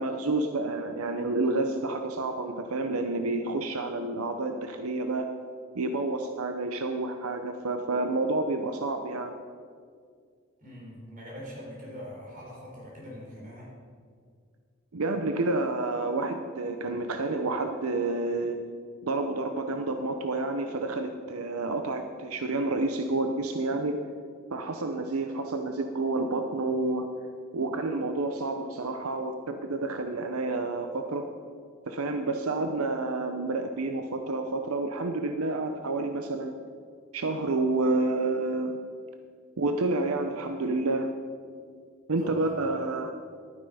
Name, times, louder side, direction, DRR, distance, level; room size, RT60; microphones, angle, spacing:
voice 1, 0.0-5.3 5.7-9.3 14.9-18.6 19.0-24.0 24.5-27.1 27.5-31.3 31.9-36.5 37.1-38.8 39.6-41.1 42.1-43.1, right 2 dB, 90° right, 6 dB, 0.7 m, -29 dB
voice 2, 10.6-13.7 42.2-42.5, equal, 40° right, -3 dB, 3.7 m, -43 dB
12.0 x 9.7 x 5.0 m, 2.1 s
head